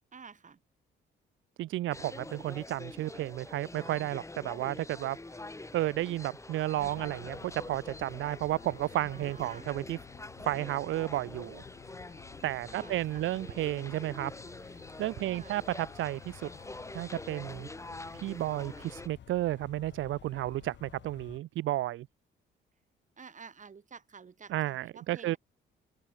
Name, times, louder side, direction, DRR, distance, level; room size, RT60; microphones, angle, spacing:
voice 1, 0.1-0.6 8.9-9.7 12.6-13.3 15.2-15.7 23.2-25.4, right 5 dB, 40° right, 4.9 m, -51 dB
voice 2, 1.6-5.2 5.7-10.0 10.4-11.6 12.4-14.3 15.0-16.5 16.9-17.7 18.2-22.1 24.5-25.4, right 15 dB, 80° right, 0.8 m, -32 dB
sound 1, 1.9-19.1, left 2 dB, 15° left, 2.8 m, -46 dB
sound 2, 6.7-21.4, left 9 dB, 65° left, 6.4 m, -53 dB
open air
cardioid pair, 90°, 20 cm